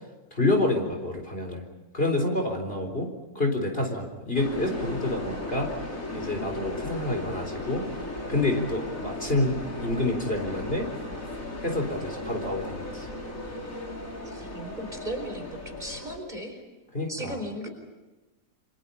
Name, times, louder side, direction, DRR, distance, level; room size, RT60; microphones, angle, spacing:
voice 1, 0.3-1.6 1.9-3.1 3.3-5.7 6.1-7.8 8.3-10.9 11.6-13.1 16.9-17.4, left 2 dB, 35° left, 3 dB, 4.2 m, -28 dB
sound 1, 4.3-16.2, left 1 dB, 55° left, 5.0 m, -36 dB
voice 2, 14.2-16.6 17.1-17.7, right 1 dB, 25° right, 4 dB, 4.6 m, -36 dB
28.5 x 26.5 x 5.6 m, 1.2 s
omnidirectional pair, 1.7 m